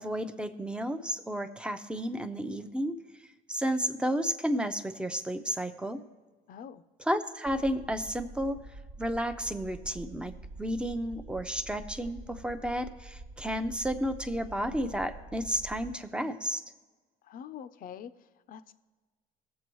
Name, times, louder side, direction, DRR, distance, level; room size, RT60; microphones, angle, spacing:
voice 1, 0.0-3.0 3.5-6.0 7.0-8.6 9.0-16.6, equal, 5° right, 9 dB, 0.7 m, -32 dB
voice 2, 6.5-6.8 17.2-18.1 18.5-18.7, left 8 dB, 55° left, 12 dB, 0.5 m, -44 dB
sound 1, 7.4-16.0, right 2 dB, 65° right, 1.4 m, -46 dB
19.0 x 7.6 x 3.1 m, 1.3 s
cardioid pair, 110°, 17 cm